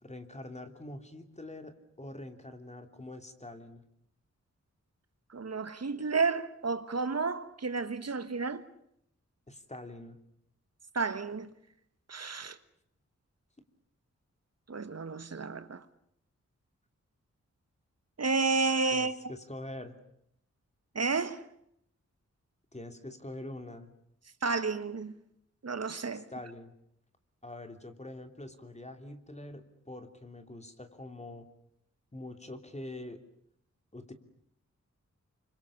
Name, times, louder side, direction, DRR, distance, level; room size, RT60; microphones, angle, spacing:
voice 1, 0.0-3.8 9.5-10.2 18.9-19.9 22.7-23.9 26.1-26.7 27.4-31.5 32.1-33.2 33.9-34.1, left 1 dB, 25° left, 3.1 m, -44 dB
voice 2, 5.3-8.6 10.9-11.5 12.1-12.6 14.7-15.8 18.2-19.2 20.9-21.4 24.4-25.2 25.6-26.3, right 4 dB, 60° right, 1.5 m, -31 dB
29.0 x 25.5 x 7.2 m
wide cardioid pair, 90°, 29 cm